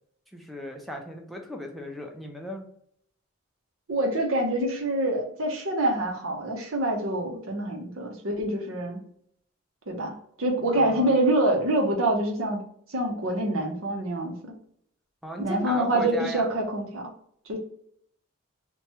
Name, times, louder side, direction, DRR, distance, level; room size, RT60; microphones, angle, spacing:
voice 1, 0.3-2.7 10.7-11.2 15.2-16.5, equal, ahead, 1 dB, 0.4 m, -37 dB
voice 2, 3.9-9.0 9.9-12.6 12.9-14.5 15.4-17.0 17.5-17.6, right 1 dB, 75° right, 1 dB, 0.8 m, -26 dB
2.9 x 2.2 x 2.9 m, 0.66 s
head